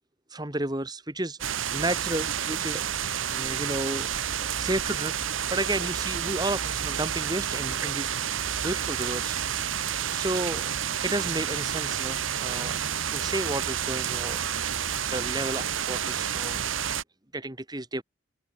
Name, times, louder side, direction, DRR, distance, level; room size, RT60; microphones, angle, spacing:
voice 1, 0.3-3.0 3.3-5.1 5.5-9.4 9.8-14.7 15.1-16.6 17.3-18.0, right 1 dB, 20° right, 1.8 m, -33 dB
sound 1, 1.4-17.0, right 9 dB, 80° right, 1.2 m, -30 dB
open air
head